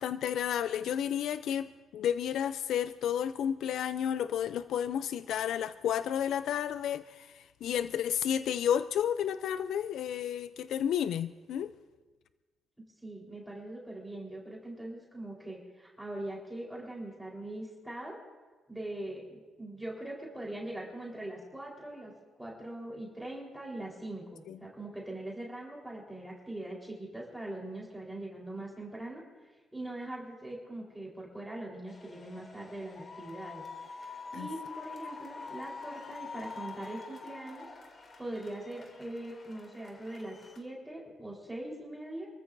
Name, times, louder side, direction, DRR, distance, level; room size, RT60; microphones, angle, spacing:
voice 1, 0.0-11.7 24.5-24.6 34.3-34.5, left 9 dB, 75° left, 0.4 m, -32 dB
voice 2, 12.8-18.2 18.7-22.1 22.4-33.6 34.3-37.7 38.2-42.3, right 1 dB, 5° right, 4.1 m, -42 dB
sound 1, 31.9-40.6, left 4 dB, 45° left, 2.7 m, -46 dB
28.0 x 14.0 x 2.7 m
cardioid pair, 90°, 0 cm